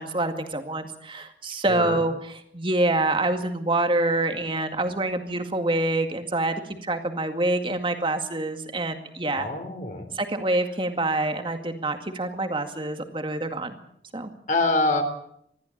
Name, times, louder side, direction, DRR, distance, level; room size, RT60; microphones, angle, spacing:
voice 1, 0.0-9.5 10.1-13.8 14.1-14.3, right 2 dB, 30° right, 6 dB, 2.1 m, -26 dB
voice 2, 1.7-2.0 9.3-10.0 14.5-15.0, left 2 dB, 45° left, 5 dB, 3.7 m, -25 dB
21.0 x 14.5 x 8.8 m, 0.71 s
head